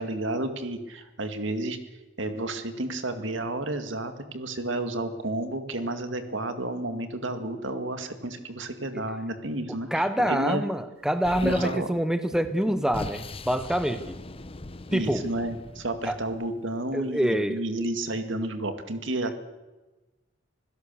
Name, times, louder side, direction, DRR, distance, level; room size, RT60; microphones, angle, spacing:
voice 1, 0.0-1.8 2.2-10.6 11.4-11.9 14.9-19.3, right 1 dB, 65° right, 8 dB, 2.2 m, -31 dB
voice 2, 9.9-14.1 14.9-15.2 16.0-16.2 16.9-17.6, equal, 5° right, 10 dB, 0.8 m, -26 dB
Explosion, 11.2-11.8 12.6-16.5, left 2 dB, 30° left, 0.7 m, -39 dB
26.0 x 16.5 x 6.9 m, 1.1 s
head